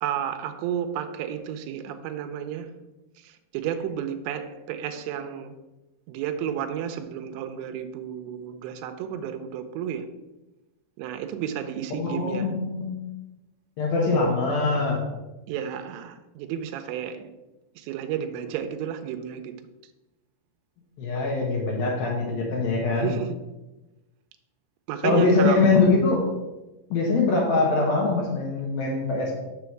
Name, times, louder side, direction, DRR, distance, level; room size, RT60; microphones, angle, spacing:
voice 1, 0.0-2.7 3.2-5.6 6.1-10.1 11.0-12.5 15.5-17.3 17.8-19.5 21.8-21.9 22.9-23.4 24.9-25.7, right 9 dB, 80° right, 2.7 m, -32 dB
voice 2, 12.0-13.0 13.8-15.0 21.0-23.1 25.0-26.3 26.9-29.3, left 3 dB, 70° left, 2.4 m, -23 dB
6.9 x 6.1 x 4.6 m
omnidirectional pair, 5.3 m